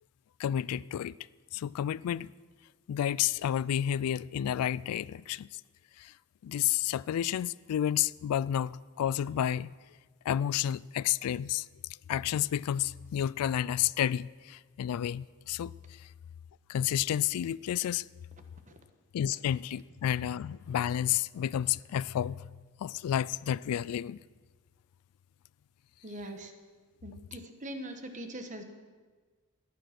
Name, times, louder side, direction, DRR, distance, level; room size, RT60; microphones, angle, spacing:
voice 1, 0.4-1.1 1.5-2.3 2.9-5.6 6.0-6.1 6.4-9.7 10.3-11.7 12.1-16.1 16.7-18.1 19.1-22.5 22.8-24.2, left 10 dB, 85° left, 0.3 m, -31 dB
voice 2, 26.0-26.5 27.0-28.6, right 1 dB, 35° right, 1.2 m, -41 dB
14.0 x 10.5 x 5.9 m
head